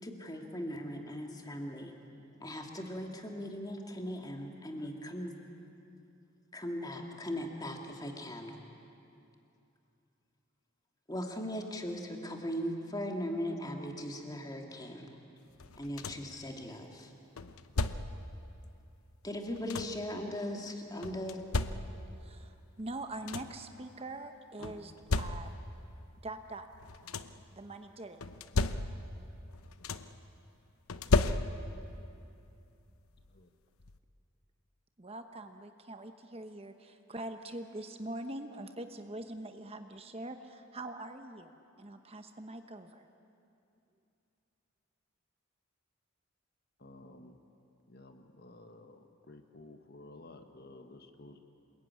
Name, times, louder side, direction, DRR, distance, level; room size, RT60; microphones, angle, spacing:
voice 1, 0.0-2.0 2.4-5.3 6.5-8.6 11.1-15.1 15.8-17.1 19.2-21.4 24.6-24.7, equal, 20° left, 2 dB, 2.4 m, -39 dB
sound 1, 15.6-16.4 17.4-18.3 19.2-20.1 21.0-22.2 22.8-22.9 23.1-23.7 24.6-25.8 26.7-27.5 28.2-29.2 29.5-30.3 30.9-31.9 33.2-33.3 33.8-34.0, left 3 dB, 85° left, 0.9 m, -34 dB
voice 2, 22.2-24.9 25.2-25.6 26.2-26.7 27.5-28.2 35.0-41.5 41.8-43.1, right 2 dB, 30° right, 7 dB, 1.0 m, -43 dB
voice 3, 46.8-47.4 47.9-49.0 49.3-51.4, left 2 dB, 50° left, 6 dB, 1.5 m, -53 dB
27.0 x 21.5 x 9.7 m, 2.7 s
head